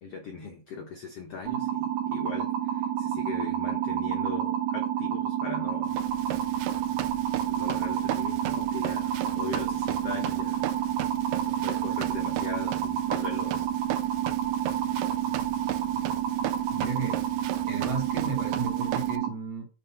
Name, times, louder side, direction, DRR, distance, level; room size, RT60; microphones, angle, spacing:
voice 1, 0.0-5.9 7.5-10.6 11.4-13.7, left 4 dB, 80° left, 2 dB, 1.3 m, -39 dB
sound 1, 1.4-19.3, right 10 dB, 65° right, 1.9 m, -29 dB
Run, 5.9-19.2, right 12 dB, 80° right, 2.0 m, -37 dB
voice 2, 16.7-17.2 17.7-19.7, right 4 dB, 50° right, 0 dB, 2.6 m, -34 dB
7.3 x 3.9 x 5.6 m, 0.34 s
omnidirectional pair, 4.5 m